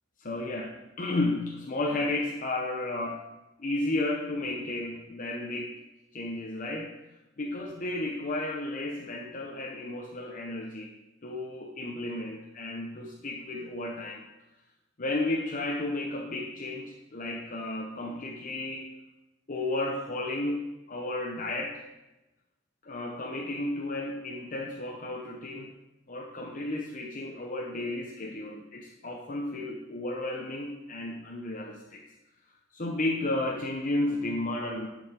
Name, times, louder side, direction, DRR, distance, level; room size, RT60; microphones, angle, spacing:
voice 1, 0.2-3.2 3.6-5.8 6.1-6.9 7.4-10.9 11.2-14.2 15.0-18.9 19.5-21.9 22.8-25.7 26.1-32.0 32.7-34.9, left 2 dB, 45° left, 0 dB, 0.9 m, -33 dB
11.0 x 5.1 x 5.2 m, 0.98 s
head